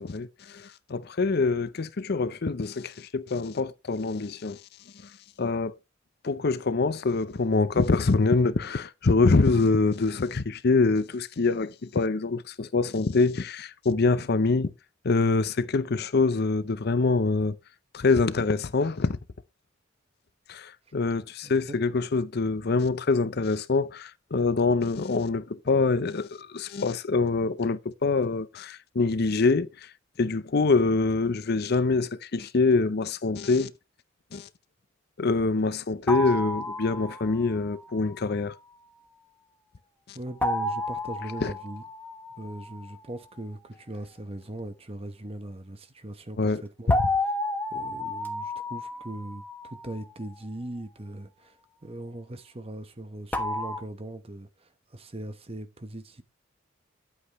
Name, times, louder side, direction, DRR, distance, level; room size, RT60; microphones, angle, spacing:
voice 1, 0.0-4.6 5.0-5.1 5.4-5.7 6.2-14.7 15.0-17.6 17.9-19.2 20.5-29.9 30.2-33.7 34.3-34.5 35.2-38.5 40.1-40.2 41.4-41.5 46.4-46.6, left 3 dB, 55° left, 0.6 m, -25 dB
sound 1, 36.1-37.6 40.4-42.9 46.9-50.1 53.3-53.8, left 1 dB, 10° left, 1.0 m, -31 dB
voice 2, 40.1-41.8 42.4-47.0 47.7-51.6 51.8-56.2, right 1 dB, 30° right, 1.0 m, -39 dB
9.8 x 8.4 x 3.0 m
head